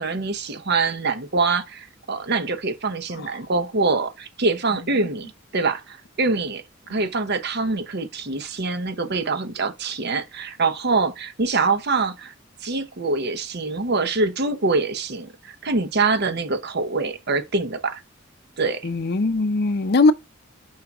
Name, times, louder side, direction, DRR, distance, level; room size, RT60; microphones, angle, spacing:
voice 1, 0.0-12.3 12.6-18.0 18.6-18.8, right 3 dB, 55° right, 0.9 m, -24 dB
voice 2, 18.8-20.1, left 3 dB, 55° left, 0.6 m, -19 dB
5.6 x 3.7 x 5.9 m
head